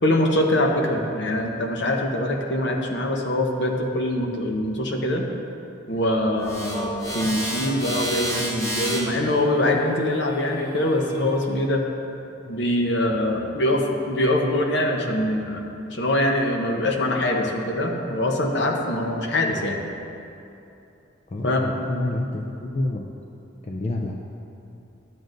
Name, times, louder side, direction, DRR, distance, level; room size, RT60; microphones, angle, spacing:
voice 1, 0.0-5.3 5.9-11.8 12.5-15.6 15.9-19.8 21.4-21.6, left 1 dB, 60° left, 2 dB, 0.9 m, -23 dB
sound 1, 6.4-11.5, equal, 15° left, 1.2 m, -32 dB
voice 2, 21.3-23.1 23.7-24.1, left 2 dB, 35° left, 0 dB, 0.4 m, -28 dB
12.5 x 7.7 x 2.6 m, 2.8 s
head